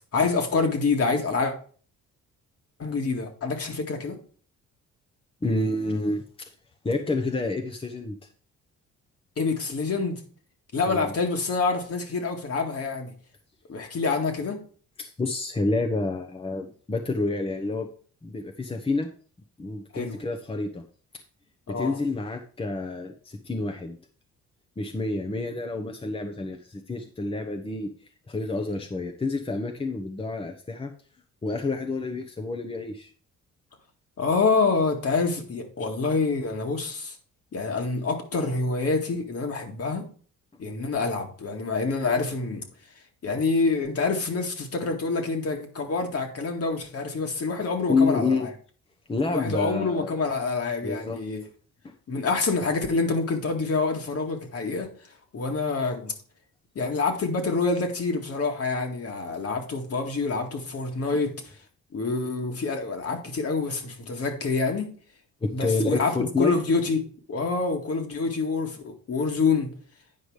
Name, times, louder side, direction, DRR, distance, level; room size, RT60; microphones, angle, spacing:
voice 1, 0.1-1.5 2.8-4.2 9.4-10.2 10.7-13.1 13.7-14.6 19.9-20.2 21.7-22.0 34.2-37.2 37.5-40.1 40.6-42.6 43.2-48.5 49.3-51.4 52.1-54.9 55.3-56.1 56.8-61.3 61.9-64.9 65.5-67.0 67.3-69.7, left 4 dB, 50° left, 2.1 m, -26 dB
voice 2, 5.4-6.5 6.8-8.2 10.9-11.1 15.0-17.9 18.2-19.1 19.6-20.8 21.7-24.0 24.8-27.9 28.3-30.9 31.4-33.1 47.9-48.5 49.1-50.2 50.8-51.2 51.8-51.9 65.4-66.6, left 3 dB, 20° left, 1.0 m, -28 dB
9.6 x 4.9 x 5.0 m
cardioid pair, 90°, 30 cm